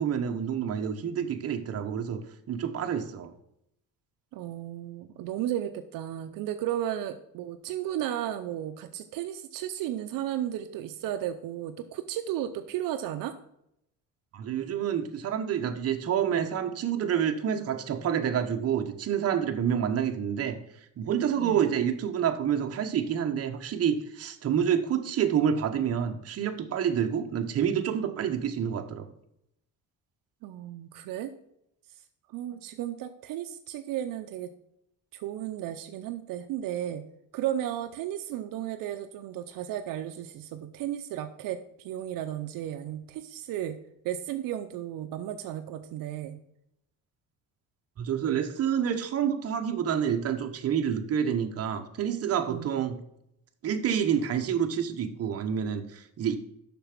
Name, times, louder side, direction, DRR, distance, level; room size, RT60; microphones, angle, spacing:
voice 1, 0.0-2.2 2.5-3.3 14.3-20.6 21.0-29.1 48.0-53.0 53.6-56.4, right 8 dB, 45° right, 5 dB, 1.1 m, -28 dB
voice 2, 4.3-13.4 21.4-21.7 30.4-31.3 32.3-34.5 35.1-37.0 37.3-43.8 44.0-46.4 52.5-52.7, right 11 dB, 80° right, 7 dB, 0.7 m, -34 dB
7.0 x 6.0 x 5.9 m, 0.78 s
cardioid pair, 135°, 33 cm